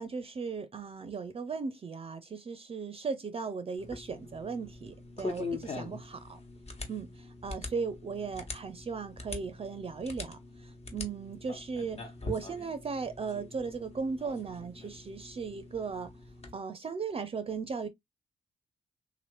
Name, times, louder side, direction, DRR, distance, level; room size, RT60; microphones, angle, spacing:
voice 1, 0.0-6.4 6.9-7.1 7.4-10.4 10.9-16.1 16.5-17.9, right 5 dB, 35° right, 0.5 m, -37 dB
sound 1, 3.8-16.5, left 3 dB, 40° left, 1.1 m, -43 dB
2.8 x 2.5 x 3.1 m
hypercardioid pair, 45°, 16 cm